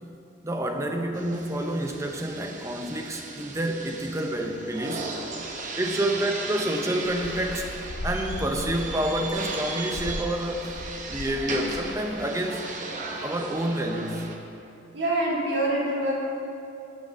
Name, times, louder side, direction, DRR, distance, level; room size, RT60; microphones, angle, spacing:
voice 1, 0.4-5.1 5.7-7.7 8.0-10.8 11.1-12.7 13.2-14.3, right 1 dB, 15° right, 3 dB, 0.6 m, -28 dB
sound 1, 1.1-14.4, right 3 dB, 40° right, 0.9 m, -36 dB
sound 2, 7.1-11.4 11.7-12.1, left 1 dB, 85° left, 0.6 m, -37 dB
voice 2, 14.9-16.1, right 1 dB, 65° right, -5 dB, 2.1 m, -25 dB
7.8 x 6.2 x 6.9 m, 2.8 s
head